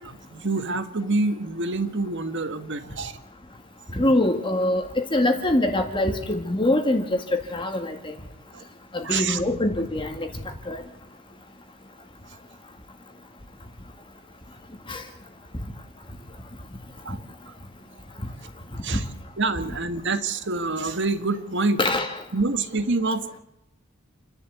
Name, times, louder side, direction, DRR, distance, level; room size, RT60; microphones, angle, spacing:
voice 1, 0.0-3.2 8.5-8.6 9.0-9.4 17.0-17.2 17.5-17.6 18.8-19.0 19.4-21.8 22.3-23.4, right 3 dB, 60° right, 10 dB, 1.6 m, -26 dB
voice 2, 3.9-8.1 8.9-10.3 10.7-10.8 14.9-15.0 18.9-19.0 19.6-19.8 21.8-22.2, left 1 dB, 25° left, 4 dB, 2.0 m, -24 dB
28.5 x 11.5 x 8.2 m, 0.88 s
head